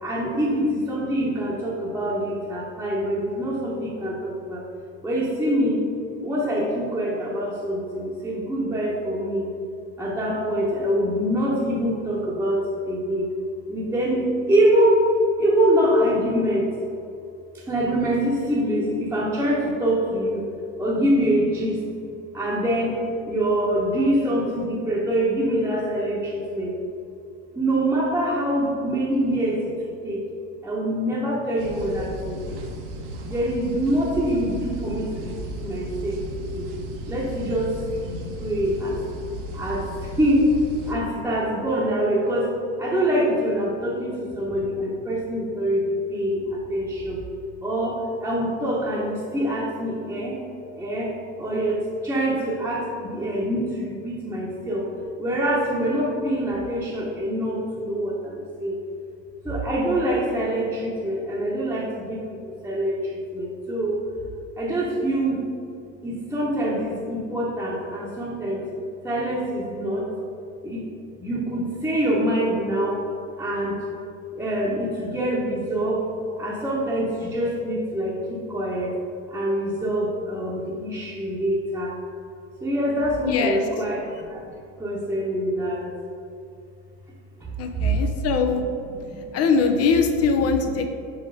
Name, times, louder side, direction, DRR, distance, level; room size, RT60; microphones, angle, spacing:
voice 1, 0.0-4.6 5.0-5.8 6.2-9.5 10.0-13.3 13.7-15.1 15.4-16.7 17.5-20.5 20.8-21.8 22.3-23.0 23.2-26.7 27.5-29.7 30.0-30.2 30.6-32.6 33.3-36.6 37.1-37.8 38.0-39.0 39.5-40.5 40.8-42.5 42.8-47.2 47.6-50.4 50.8-51.1 51.4-54.8 55.2-58.8 59.4-62.2 62.6-64.0 64.6-65.4 66.0-68.7 69.0-70.1 70.6-70.8 71.2-73.0 73.4-73.8 74.3-76.1 76.4-79.0 79.3-81.9 82.6-84.4 84.8-85.9 87.8-88.0 89.1-89.3, right 1 dB, 5° right, -6 dB, 1.0 m, -25 dB
sound 1, 31.6-41.0, right 1 dB, 60° right, 1.1 m, -35 dB
voice 2, 83.2-83.8 87.6-88.6 89.3-90.9, left 5 dB, 40° left, 5 dB, 0.6 m, -22 dB
4.9 x 4.7 x 4.8 m, 2.6 s
hypercardioid pair, 105°, 39 cm